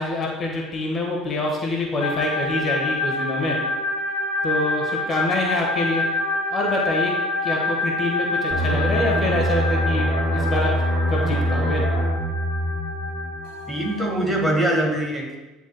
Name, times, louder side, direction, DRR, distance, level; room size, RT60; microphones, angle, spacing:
voice 1, 0.0-3.6 4.4-6.0 6.5-7.1 7.4-10.1 10.3-10.7 11.1-11.8, left 2 dB, 30° left, -1 dB, 1.3 m, -25 dB
sound 1, 2.0-14.1, left 2 dB, 60° left, 0.9 m, -27 dB
sound 2, 8.5-13.9 14.2-14.5, equal, 35° right, 1.5 m, -24 dB
voice 2, 13.7-15.4, right 1 dB, 15° right, -1 dB, 1.6 m, -23 dB
10.0 x 4.1 x 2.2 m, 1.1 s
figure-of-eight pair, 65°, 0 cm